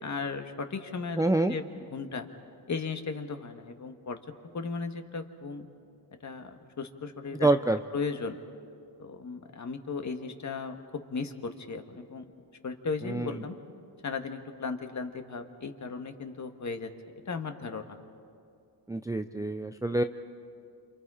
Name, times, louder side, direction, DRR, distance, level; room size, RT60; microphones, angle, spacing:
voice 1, 0.0-2.3 2.7-4.2 4.5-5.7 6.2-7.5 7.9-8.4 9.0-10.8 11.1-12.2 12.6-13.5 14.0-16.9 17.2-17.9, left 4 dB, 40° left, 6 dB, 1.7 m, -36 dB
voice 2, 1.2-1.5 7.4-7.8 13.0-13.4 18.9-20.0, right 2 dB, 10° right, 7 dB, 0.5 m, -26 dB
29.0 x 28.0 x 5.0 m, 2.4 s
cardioid pair, 105°, 45 cm